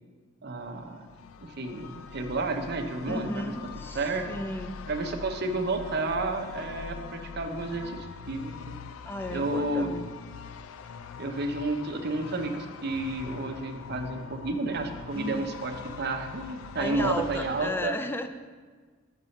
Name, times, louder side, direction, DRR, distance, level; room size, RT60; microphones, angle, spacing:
voice 1, 0.4-1.1 1.4-3.5 3.9-4.2 4.9-8.8 9.3-9.9 11.2-17.9, right 2 dB, 55° right, 5 dB, 0.6 m, -31 dB
sound 1, 0.6-17.7, left 6 dB, 90° left, 0.3 m, -43 dB
voice 2, 3.1-4.8 9.0-10.0 15.1-15.6 16.8-18.3, left 1 dB, 10° left, 8 dB, 0.3 m, -34 dB
6.0 x 5.7 x 5.2 m, 1.5 s
head